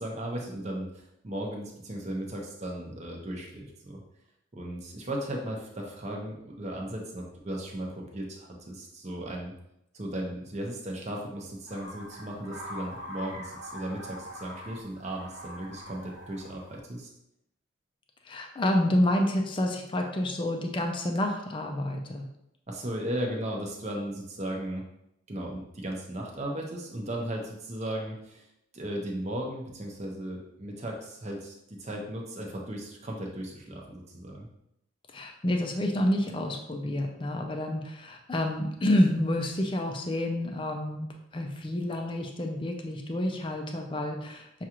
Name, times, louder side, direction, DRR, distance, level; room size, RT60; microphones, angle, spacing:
voice 1, 0.0-4.0 4.5-9.5 9.9-17.1 22.7-24.8 25.3-28.4 28.7-34.5, right 1 dB, 35° right, 0 dB, 0.7 m, -36 dB
sound 1, 11.7-16.8, equal, 65° right, 1.1 m, -43 dB
voice 2, 18.2-22.3 35.1-41.1 41.3-44.6, left 1 dB, 25° left, 2 dB, 0.4 m, -28 dB
6.1 x 2.4 x 2.9 m, 0.81 s
head